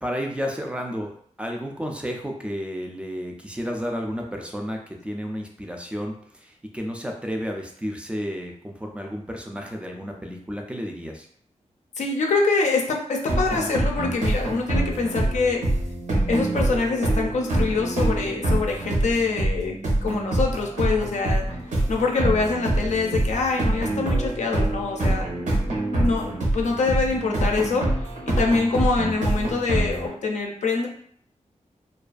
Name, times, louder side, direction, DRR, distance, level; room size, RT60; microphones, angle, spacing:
voice 1, 0.0-1.1 1.4-11.3, equal, 10° right, 1 dB, 0.3 m, -32 dB
voice 2, 12.0-15.6 16.3-21.4 21.9-25.3 25.9-27.9 28.3-30.9, left 4 dB, 70° left, 1 dB, 0.4 m, -25 dB
sound 1, 13.3-30.1, right 1 dB, 80° right, 0.8 m, -25 dB
2.3 x 2.3 x 2.4 m, 0.62 s
wide cardioid pair, 135°, 13 cm